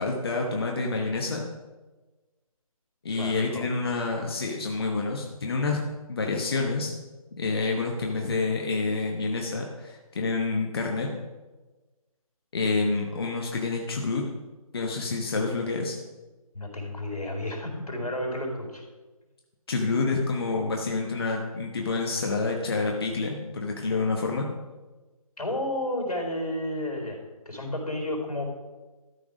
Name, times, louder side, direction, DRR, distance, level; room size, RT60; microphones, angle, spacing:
voice 1, 0.0-1.4 3.0-5.8 6.1-6.9 7.4-11.1 12.5-14.2 14.7-16.0 19.7-24.5, left 3 dB, 40° left, 1 dB, 1.1 m, -28 dB
voice 2, 3.1-3.7 16.5-18.8 25.4-27.2 27.5-28.5, left 1 dB, 85° left, 1 dB, 4.0 m, -31 dB
13.0 x 6.1 x 5.0 m, 1.2 s
figure-of-eight pair, 165°, 19 cm